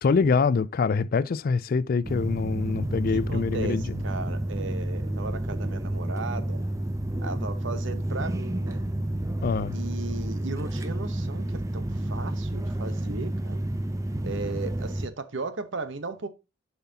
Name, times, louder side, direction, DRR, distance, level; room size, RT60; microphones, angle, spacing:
voice 1, 0.0-4.0 9.4-9.8, left 5 dB, 45° left, 0.3 m, -25 dB
sound 1, 2.0-15.1, right 1 dB, 15° right, 0.5 m, -30 dB
voice 2, 3.3-6.6 7.2-8.8 9.7-13.6 14.2-16.3, right 3 dB, 60° right, 0.9 m, -36 dB
10.5 x 5.7 x 2.8 m
head